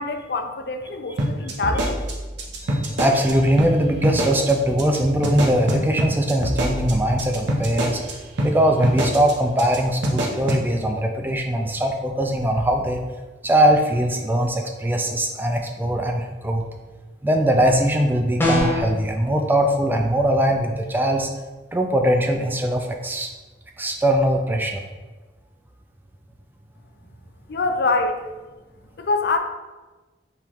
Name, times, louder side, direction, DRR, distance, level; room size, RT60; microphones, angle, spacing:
voice 1, 0.0-2.0 27.5-28.2 29.0-29.4, left 3 dB, 60° left, 6 dB, 0.4 m, -24 dB
sound 1, 1.2-3.3 3.6-3.7 4.0-4.5 4.8-5.0 5.2-8.1 8.4-8.5 8.8-9.3 9.6-9.8 10.0-10.6, right 1 dB, 80° right, 0.8 m, -23 dB
voice 2, 2.6-8.0 8.4-13.0 13.4-16.6 17.2-21.3 21.7-23.3 23.8-24.8, right 1 dB, 10° right, 3 dB, 0.3 m, -21 dB
sound 2, 18.4-18.9, left 1 dB, 10° left, 0.8 m, -20 dB
4.4 x 3.0 x 3.5 m, 1.2 s
head